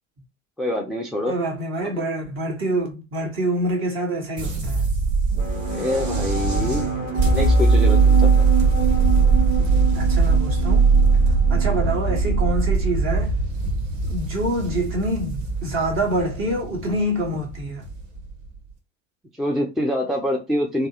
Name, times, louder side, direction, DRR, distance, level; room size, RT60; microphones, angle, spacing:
voice 1, 0.6-1.3 5.5-8.4 19.4-20.9, left 1 dB, ahead, 0.4 m, -26 dB
voice 2, 1.3-4.9 9.6-10.9 11.5-13.4 14.0-17.8, right 1 dB, 35° right, 1.3 m, -26 dB
sound 1, 4.4-18.6, right 4 dB, 70° right, 1.1 m, -20 dB
sound 2, 5.3-12.9, right 5 dB, 90° right, 0.9 m, -29 dB
3.2 x 2.0 x 2.7 m
hypercardioid pair, 75°, 38 cm